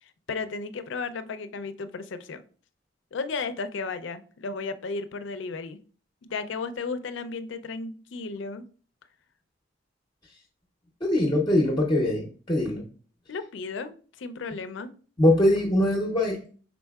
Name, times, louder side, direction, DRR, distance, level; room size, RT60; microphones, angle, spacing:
voice 1, 0.0-2.4 3.1-5.8 6.2-8.7 13.3-14.9, left 4 dB, 70° left, 12 dB, 0.4 m, -34 dB
voice 2, 11.0-12.8 15.2-16.4, left 1 dB, 25° left, -1 dB, 0.6 m, -22 dB
5.3 x 4.0 x 2.3 m, 0.41 s
head